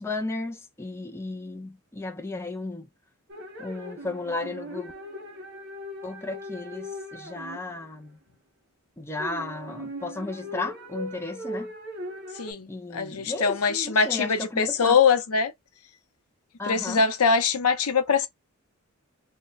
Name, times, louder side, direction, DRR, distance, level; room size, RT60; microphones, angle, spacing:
voice 1, 0.0-2.9 3.6-4.9 6.0-8.2 9.0-11.7 12.7-15.0 16.6-17.0, left 2 dB, 10° left, 0.4 m, -34 dB
sound 1, 3.3-7.8 9.2-12.5, equal, 50° right, 1.0 m, -39 dB
voice 2, 12.4-15.5 16.7-18.3, left 5 dB, 90° left, 0.7 m, -23 dB
3.1 x 2.2 x 3.9 m
head